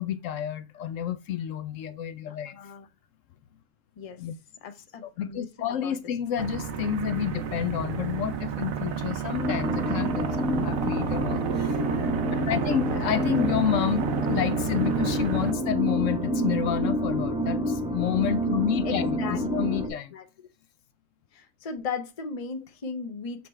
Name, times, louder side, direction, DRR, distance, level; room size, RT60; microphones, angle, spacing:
voice 1, 0.0-2.6 4.2-4.3 5.0-12.1 12.4-20.1, left 9 dB, 70° left, 0.9 m, -30 dB
voice 2, 2.3-2.9 4.0-4.2 4.6-6.0 6.4-6.5 12.7-13.3 18.8-19.4 19.8-20.2 21.3-23.5, left 5 dB, 35° left, 0.7 m, -37 dB
sound 1, 6.4-15.5, right 7 dB, 80° right, 1.2 m, -31 dB
sound 2, 9.4-19.9, equal, 5° right, 0.8 m, -28 dB
6.9 x 3.3 x 4.3 m
omnidirectional pair, 1.4 m